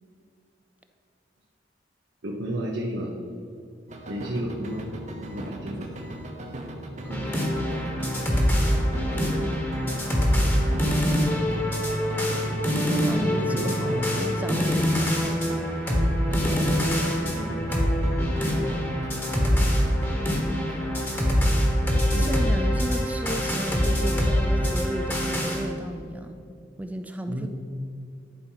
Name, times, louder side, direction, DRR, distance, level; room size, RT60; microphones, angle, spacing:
voice 1, 2.2-3.2 4.1-4.8 5.2-6.0 7.0-7.4 12.8-13.1 13.4-13.9 16.4-16.8 17.2-17.6 22.1-22.3 27.3-27.5, right 1 dB, 70° right, -2 dB, 0.9 m, -32 dB
sound 1, 3.9-16.8 17.0-20.9, right 1 dB, 40° right, 0.9 m, -39 dB
sound 2, 7.1-25.6, equal, 10° left, 1.2 m, -24 dB
voice 2, 12.9-15.3 22.1-26.4 26.8-27.5, right 1 dB, 10° right, 7 dB, 0.3 m, -33 dB
10.5 x 4.3 x 5.7 m, 2.6 s
head